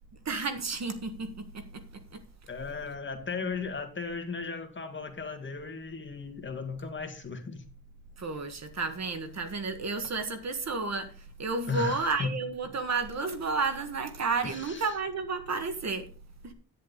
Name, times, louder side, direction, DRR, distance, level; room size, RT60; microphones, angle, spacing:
voice 1, 0.2-2.2 8.2-11.1 11.4-16.1 16.4-16.5, right 4 dB, 45° right, 1.7 m, -32 dB
voice 2, 2.5-7.6 11.7-12.3 14.4-14.9, left 4 dB, 30° left, 1.9 m, -36 dB
10.5 x 10.0 x 4.0 m
wide cardioid pair, 140°, 38 cm